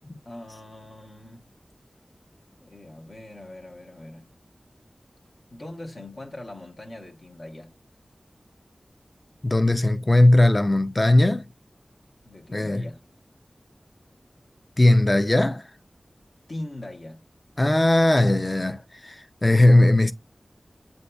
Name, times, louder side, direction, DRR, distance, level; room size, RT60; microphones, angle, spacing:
voice 1, 0.2-1.5 2.6-4.3 5.5-7.7 12.2-13.0 16.5-17.2, left 1 dB, 70° left, 0.9 m, -41 dB
voice 2, 9.4-11.5 12.5-12.8 14.8-15.7 17.6-20.1, left 1 dB, 30° left, 0.4 m, -19 dB
7.8 x 2.6 x 2.3 m
wide cardioid pair, 60°, 0 cm